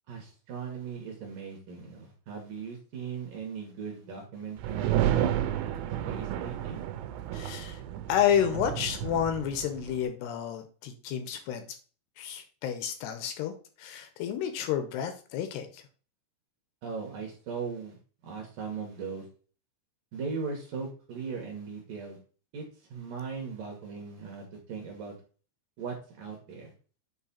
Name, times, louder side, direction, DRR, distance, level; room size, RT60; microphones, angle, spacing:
voice 1, 0.1-5.4 6.1-6.8 16.8-18.0 18.2-19.3 20.1-22.2 22.5-25.1 25.8-26.7, right 5 dB, 65° right, 1 dB, 2.2 m, -38 dB
sound 1, 4.6-10.0, right 11 dB, 80° right, 2.5 m, -31 dB
voice 2, 7.3-7.8 8.1-11.6 12.2-13.5 13.8-15.8, left 9 dB, 80° left, 8 dB, 2.4 m, -30 dB
8.1 x 3.2 x 4.1 m, 0.39 s
omnidirectional pair, 5.4 m